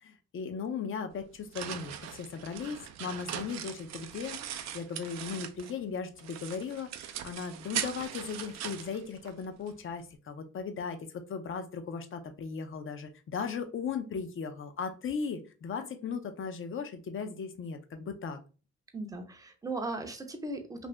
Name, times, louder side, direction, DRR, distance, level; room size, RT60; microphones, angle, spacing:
voice 1, 0.0-18.4, left 6 dB, 45° left, 7 dB, 0.6 m, -37 dB
sound 1, 1.1-5.8 6.2-9.7, right 10 dB, 65° right, 0.4 m, -40 dB
voice 2, 18.9-20.9, right 2 dB, 10° right, 5 dB, 0.6 m, -37 dB
2.6 x 2.6 x 3.2 m, 0.35 s
cardioid pair, 90°, 30 cm